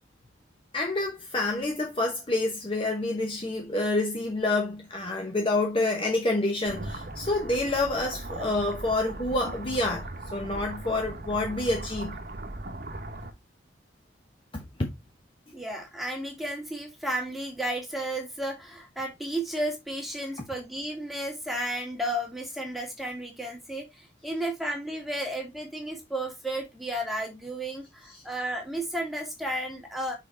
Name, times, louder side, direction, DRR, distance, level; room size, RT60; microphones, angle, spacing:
voice 1, 0.7-12.2 14.5-14.9 28.1-28.2, left 2 dB, 30° left, 1.0 m, -28 dB
sound 1, 6.7-13.3, right 2 dB, 50° right, 1.0 m, -38 dB
voice 2, 15.5-30.1, right 1 dB, ahead, 2.2 m, -33 dB
6.2 x 4.6 x 3.4 m
head